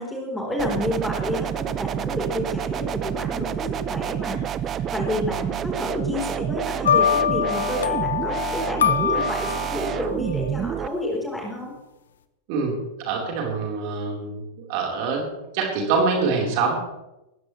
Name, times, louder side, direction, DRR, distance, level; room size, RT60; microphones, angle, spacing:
voice 1, 0.0-4.4 4.7-11.7, left 1 dB, 5° left, -1 dB, 4.5 m, -30 dB
sound 1, 0.6-10.9, right 9 dB, 30° right, 0.8 m, -28 dB
sound 2, 6.8-10.1, left 9 dB, 65° left, 1.0 m, -23 dB
voice 2, 12.5-14.4 14.7-15.3 15.5-16.8, right 4 dB, 45° right, -1 dB, 4.6 m, -24 dB
20.0 x 16.0 x 3.4 m, 0.96 s
figure-of-eight pair, 90°, 0 cm